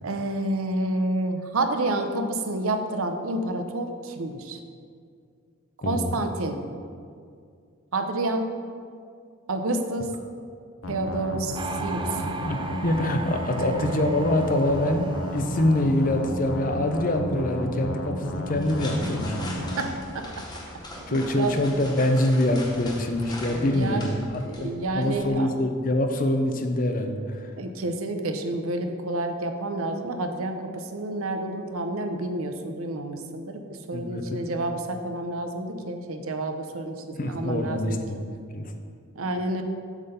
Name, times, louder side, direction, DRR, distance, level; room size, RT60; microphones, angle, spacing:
voice 1, 0.0-4.6 5.9-6.6 7.9-8.5 9.5-10.1 10.9-12.2 13.6-13.7 19.8-20.5 20.9-21.6 23.5-24.1 24.5-25.5 27.6-38.0 39.1-39.6, right 2 dB, 80° right, 6 dB, 0.7 m, -29 dB
voice 2, 5.8-6.1 12.5-19.4 21.1-24.7 24.9-27.5 33.9-34.5 37.2-38.7, left 1 dB, 40° left, 5 dB, 0.6 m, -25 dB
sound 1, 10.8-19.9, equal, 70° left, 0.8 m, -32 dB
sound 2, 11.6-17.4 17.7-18.1, right 3 dB, 20° right, 0.3 m, -37 dB
sound 3, 18.4-25.3, left 1 dB, 20° left, 1.0 m, -41 dB
8.1 x 3.8 x 6.7 m, 2.3 s
head